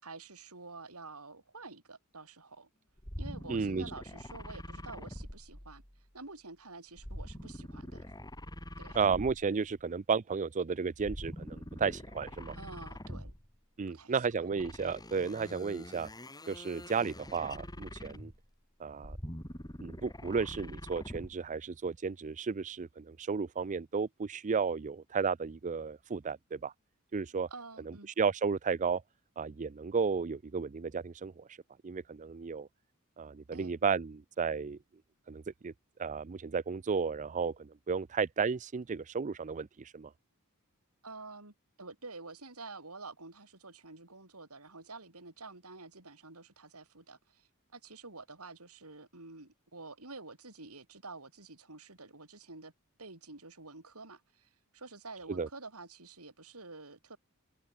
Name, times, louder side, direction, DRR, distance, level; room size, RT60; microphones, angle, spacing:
voice 1, 0.0-2.7 3.2-5.8 6.1-8.1 8.8-9.1 12.5-13.3 13.9-14.3 27.5-28.1 33.5-33.7 41.0-52.7 53.0-57.2, right 3 dB, 90° right, 6.0 m, -49 dB
sound 1, 3.0-6.0 7.0-9.7 10.9-13.6 14.5-18.5 18.9-21.4, equal, 20° left, 6.3 m, -44 dB
voice 2, 3.5-3.9 8.9-12.5 13.8-16.1 16.5-18.3 18.8-19.2 19.8-26.7 27.1-27.5 27.9-29.0 29.4-31.6 31.8-32.7 33.2-34.8 35.3-35.7 36.0-40.1 55.3-55.5, right 5 dB, 35° right, 0.5 m, -33 dB
head